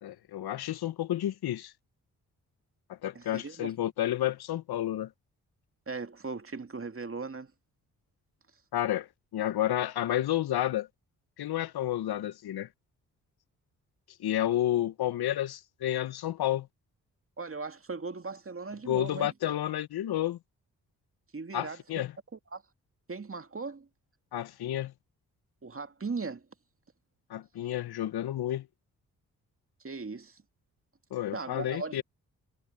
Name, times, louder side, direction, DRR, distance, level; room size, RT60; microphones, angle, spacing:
voice 1, 0.0-1.7 2.9-5.1 8.7-10.9 11.4-12.7 14.2-16.7 18.9-20.4 21.5-22.1 24.3-24.9 27.3-28.7 31.1-32.0, left 12 dB, 70° left, 1.3 m, -30 dB
voice 2, 3.1-3.7 5.9-7.5 17.4-19.3 21.3-22.0 22.3-22.6 23.1-23.9 25.6-26.4 29.8-30.4 31.3-32.0, right 4 dB, 35° right, 2.3 m, -38 dB
hypercardioid pair, 40°, 40 cm